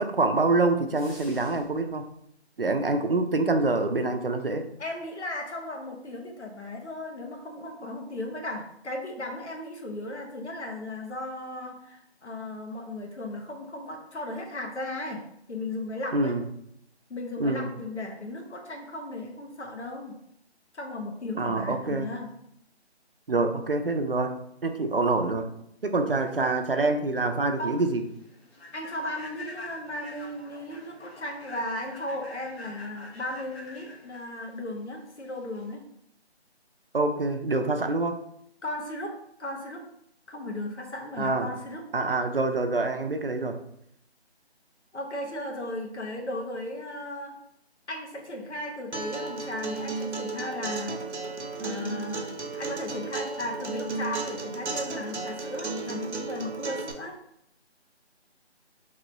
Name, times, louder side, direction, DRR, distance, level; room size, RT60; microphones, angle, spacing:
voice 1, 0.0-2.0 2.6-4.7 16.1-16.4 17.4-17.7 21.4-22.1 23.3-25.5 25.8-28.0 36.9-38.2 41.2-41.5 41.9-43.6, right 3 dB, 55° right, 7 dB, 0.4 m, -26 dB
sound 1, 0.9-1.9, left 1 dB, 30° left, 1.0 m, -50 dB
voice 2, 4.8-15.2 15.5-16.3 17.1-20.2 20.7-22.3 27.6-27.8 28.7-35.8 38.6-39.8 40.3-41.8 44.9-47.4 47.9-51.0 51.6-57.2, left 1 dB, 85° left, 2 dB, 1.1 m, -36 dB
Human voice / Train, 27.0-35.7, left 2 dB, 65° left, 1.1 m, -47 dB
Acoustic guitar, 48.9-56.9, right 3 dB, 90° right, 0.8 m, -34 dB
3.0 x 3.0 x 3.9 m, 0.74 s
figure-of-eight pair, 175°, 33 cm